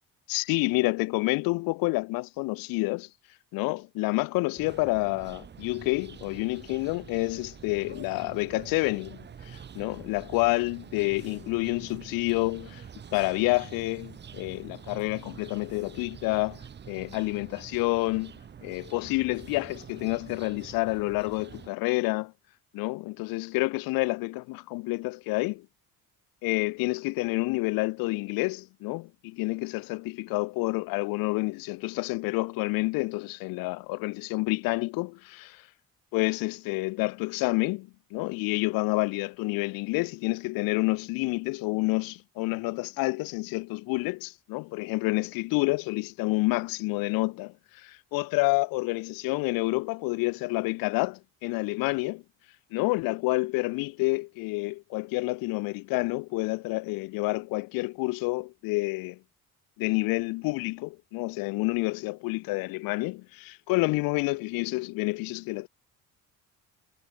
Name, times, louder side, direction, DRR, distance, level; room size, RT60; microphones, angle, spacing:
voice 1, 0.3-3.1 3.5-12.8 13.1-16.6 16.9-18.3 18.6-22.3 22.7-25.7 26.4-35.7 36.1-52.2 52.7-59.2 59.8-65.7, left 24 dB, 85° left, 0.5 m, -29 dB
sound 1, 4.6-21.7, right 7 dB, 30° right, 0.8 m, -46 dB
cardioid pair, 90°, 34 cm